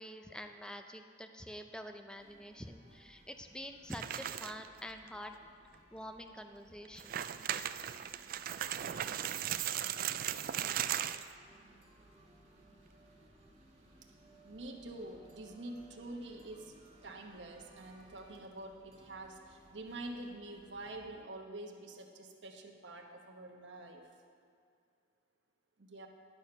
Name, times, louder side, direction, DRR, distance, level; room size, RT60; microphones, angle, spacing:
voice 1, 0.0-5.3 5.9-7.2, equal, 5° left, 6 dB, 0.5 m, -47 dB
sound 1, 2.2-21.1, right 1 dB, 35° right, 1.7 m, -62 dB
sound 2, 3.9-4.7 5.1-5.2 5.7-5.8 6.9-11.3, right 10 dB, 50° right, 0.3 m, -37 dB
voice 2, 14.4-16.7 17.0-24.0 25.8-26.1, right 2 dB, 75° right, 2 dB, 1.1 m, -46 dB
11.0 x 6.9 x 5.6 m, 2.4 s
head